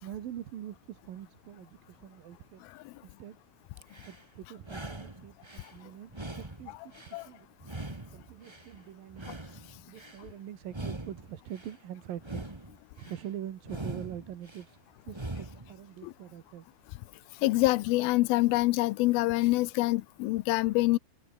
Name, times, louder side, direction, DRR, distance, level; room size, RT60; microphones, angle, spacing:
voice 1, 0.0-2.7 3.0-3.4 4.0-7.5 7.9-9.4 9.9-16.7, right 11 dB, 75° right, 3.3 m, -44 dB
sound 1, 3.8-4.2 4.6-5.7 6.1-7.2 7.6-8.7 9.1-10.2 10.7-11.7 12.2-13.2 13.6-14.6 15.1-15.7, right 2 dB, 30° right, 0.5 m, -42 dB
voice 2, 17.4-21.0, left 19 dB, 90° left, 2.6 m, -25 dB
omnidirectional pair, 4.3 m